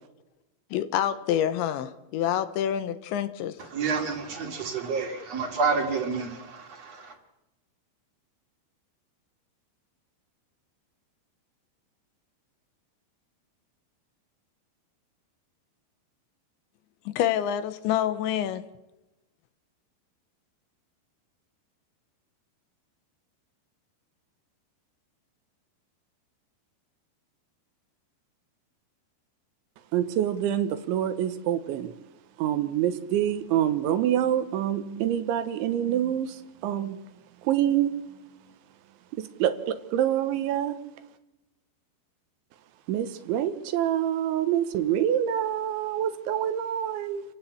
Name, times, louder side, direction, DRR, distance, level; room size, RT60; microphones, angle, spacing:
voice 1, 0.7-3.6 17.1-18.6, left 10 dB, 80° left, 3.3 m, -27 dB
voice 2, 3.6-7.2, right 5 dB, 40° right, 2.9 m, -29 dB
voice 3, 29.9-31.9 32.4-37.0 37.4-38.0 39.1-40.8 42.9-47.2, right 11 dB, 85° right, 3.5 m, -26 dB
28.5 x 16.0 x 8.5 m
omnidirectional pair, 5.4 m